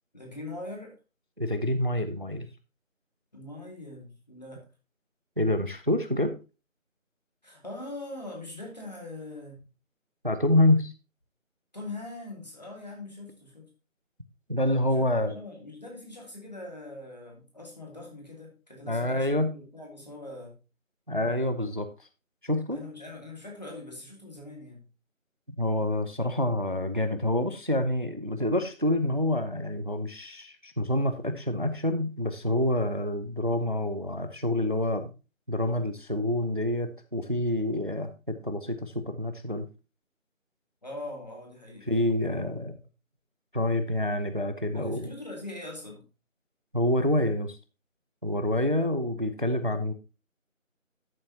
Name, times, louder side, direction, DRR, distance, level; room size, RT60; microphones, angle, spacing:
voice 1, 0.1-1.0 3.3-4.6 7.4-9.6 11.7-13.7 14.9-20.6 22.7-24.9 40.8-41.9 44.7-46.0, left 2 dB, 30° left, 0 dB, 2.5 m, -42 dB
voice 2, 1.4-2.5 5.4-6.4 10.2-10.9 14.5-15.3 18.9-19.5 21.1-21.9 22.4-22.8 25.6-35.1 35.5-39.7 41.9-42.8 43.5-45.1 46.7-47.6 48.2-49.9, left 1 dB, 40° right, 9 dB, 0.7 m, -27 dB
12.0 x 7.6 x 2.8 m, 0.31 s
figure-of-eight pair, 180°, 40 cm